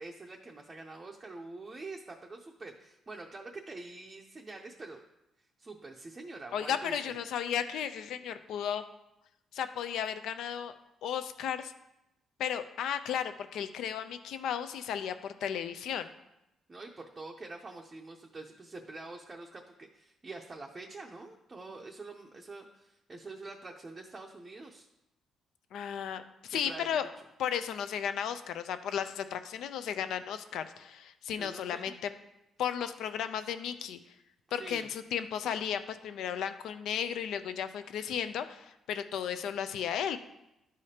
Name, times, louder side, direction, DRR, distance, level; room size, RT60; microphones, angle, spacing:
voice 1, 0.0-5.0 5.6-7.2 16.7-24.9 26.5-27.1 31.4-31.9 34.5-34.9, right 3 dB, 25° right, 0 dB, 0.5 m, -46 dB
voice 2, 6.5-8.8 9.5-10.7 11.0-11.7 12.4-16.1 25.7-27.1 27.4-32.1 32.6-34.0 34.5-40.2, left 8 dB, 75° left, 10 dB, 0.5 m, -34 dB
11.5 x 4.9 x 2.8 m, 0.89 s
cardioid pair, 130°, 0 cm